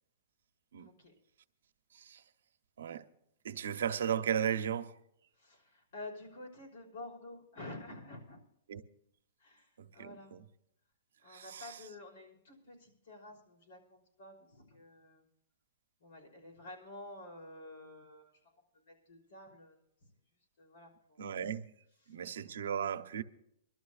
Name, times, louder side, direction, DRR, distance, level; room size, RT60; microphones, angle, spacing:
voice 1, 0.8-1.1 5.4-8.4 9.4-10.3 11.2-15.2 16.0-18.3 18.9-19.8 20.6-21.2 22.0-22.1, left 2 dB, 65° left, 5.4 m, -50 dB
voice 2, 1.9-2.2 2.8-3.1 3.4-5.0 8.7-8.8 9.8-10.4 11.3-11.9 21.2-21.7 22.1-23.2, right 8 dB, 90° right, 0.8 m, -36 dB
26.0 x 12.5 x 2.4 m
hypercardioid pair, 175°, 0 cm